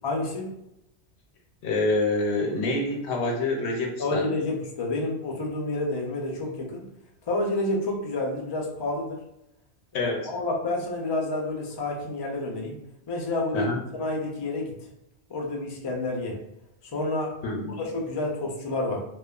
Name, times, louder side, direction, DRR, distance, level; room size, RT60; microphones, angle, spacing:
voice 1, 0.0-0.5 4.0-6.8 7.3-9.2 9.9-12.8 13.1-14.8 15.3-16.4 16.9-17.3 17.8-19.0, left 2 dB, 45° left, -1 dB, 0.3 m, -29 dB
voice 2, 1.6-4.3 9.9-10.3 13.5-13.8 17.4-17.8, left 2 dB, 80° left, 2 dB, 0.8 m, -26 dB
2.8 x 2.1 x 2.3 m, 0.82 s
omnidirectional pair, 1.1 m